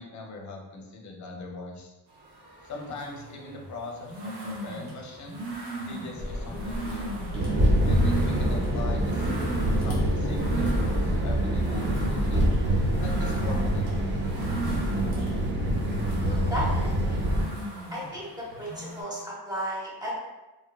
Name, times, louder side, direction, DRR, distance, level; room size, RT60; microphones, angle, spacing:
voice 1, 0.0-1.9 2.6-5.4 5.9-7.1 7.8-9.3 9.8-12.5 13.0-14.3, left 2 dB, 45° left, 0 dB, 0.5 m, -41 dB
sound 1, 2.1-19.0, right 2 dB, 75° right, 0.8 m, -38 dB
sound 2, 6.2-15.5, left 1 dB, 15° left, 1.0 m, -40 dB
sound 3, 7.3-17.4, right 1 dB, 30° right, 0.4 m, -25 dB
voice 2, 16.2-17.2 17.9-20.2, equal, 10° right, -7 dB, 1.0 m, -34 dB
2.7 x 2.1 x 2.2 m, 1.1 s
cardioid pair, 110°, 40 cm